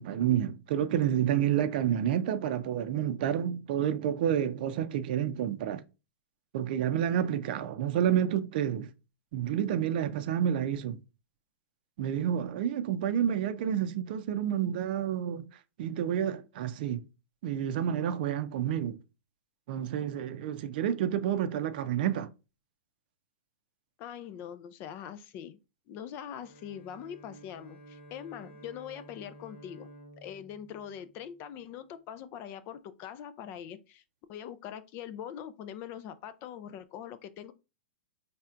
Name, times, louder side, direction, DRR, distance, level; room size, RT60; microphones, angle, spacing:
voice 1, 0.0-5.8 6.5-8.9 9.3-11.0 12.0-15.5 15.8-17.0 17.4-19.0 19.7-22.3, right 10 dB, 55° right, 0.5 m, -29 dB
voice 2, 24.0-25.6 25.9-29.9 30.2-34.0 34.3-37.5, left 9 dB, 35° left, 0.4 m, -43 dB
Bowed string instrument, 26.2-31.7, right 1 dB, 75° left, 1.2 m, -53 dB
4.3 x 3.3 x 2.5 m
hypercardioid pair, 125°, 6 cm